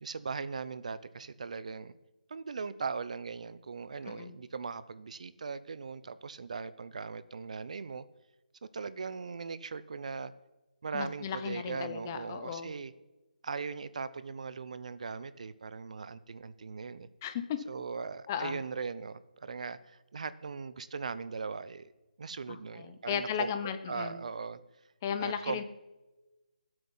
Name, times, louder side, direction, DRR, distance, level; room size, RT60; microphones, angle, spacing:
voice 1, 0.0-2.0 2.3-8.0 8.7-10.3 10.8-12.9 13.4-17.1 17.7-21.9 22.2-23.5 23.9-24.6 25.2-25.6, right 5 dB, 55° right, 15 dB, 0.7 m, -39 dB
voice 2, 10.9-12.7 17.2-17.6 18.3-18.6 22.5-24.2 25.0-25.6, left 8 dB, 20° left, 9 dB, 0.8 m, -35 dB
19.0 x 8.0 x 5.6 m, 1.1 s
hypercardioid pair, 165°, 5 cm